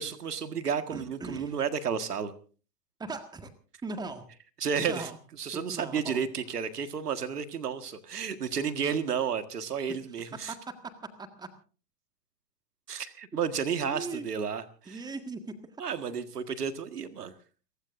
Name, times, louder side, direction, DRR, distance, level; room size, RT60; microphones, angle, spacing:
voice 1, 0.0-2.3 4.6-5.1 5.4-10.5 12.9-15.0 15.8-17.3, right 7 dB, 75° right, 11 dB, 1.8 m, -32 dB
voice 2, 0.9-1.5 3.0-3.5 3.8-4.3 4.9-5.1 5.5-6.2 10.3-11.5 13.8-14.3 14.9-15.6, right 3 dB, 10° right, 9 dB, 1.7 m, -39 dB
30.0 x 15.5 x 2.6 m, 0.38 s
figure-of-eight pair, 110°, 47 cm